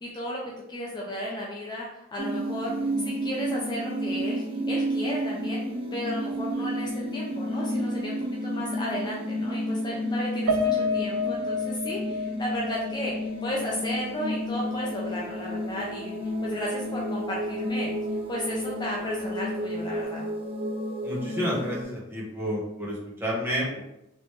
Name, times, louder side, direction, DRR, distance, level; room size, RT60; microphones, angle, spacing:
voice 1, 0.0-0.4 0.7-5.6 5.9-8.1 8.4-16.2 16.4-17.9 18.3-20.2, equal, 20° left, -4 dB, 0.5 m, -34 dB
sound 1, 2.2-21.8, equal, 30° right, 0.6 m, -31 dB
Piano, 10.5-15.0 15.3-15.5 15.9-16.0, left 3 dB, 85° right, 0.4 m, -31 dB
voice 2, 21.0-23.8, equal, 10° right, -6 dB, 1.0 m, -30 dB
3.2 x 3.0 x 3.1 m, 0.87 s
head